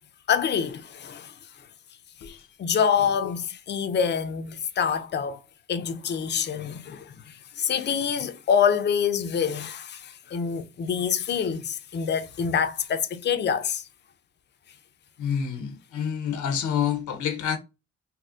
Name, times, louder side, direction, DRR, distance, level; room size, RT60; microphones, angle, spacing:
voice 1, 0.3-1.3 2.2-5.4 5.7-13.8, left 7 dB, 40° left, 0.4 m, -26 dB
voice 2, 15.2-17.6, left 8 dB, 85° left, 0.8 m, -28 dB
4.1 x 2.1 x 2.3 m
cardioid pair, 95°, 29 cm